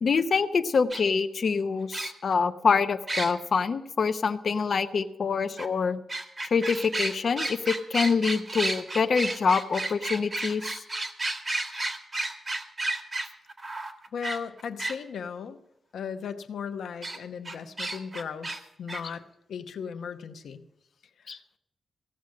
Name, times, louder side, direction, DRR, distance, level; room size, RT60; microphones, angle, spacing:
voice 1, 0.0-6.0 6.5-10.8 21.3-21.4, left 5 dB, 60° left, 8 dB, 0.7 m, -25 dB
sound 1, 0.9-1.0 1.9-2.3 3.1-3.3 5.6-5.7 6.1-15.0 17.0-17.2 17.5-18.6 18.9-19.0, right 2 dB, 40° right, 1.8 m, -32 dB
voice 2, 14.1-15.6 15.9-19.2 19.5-20.6 21.2-21.4, left 6 dB, 85° left, 7 dB, 0.9 m, -37 dB
16.5 x 6.4 x 8.4 m, 0.83 s
cardioid pair, 75°, 0 cm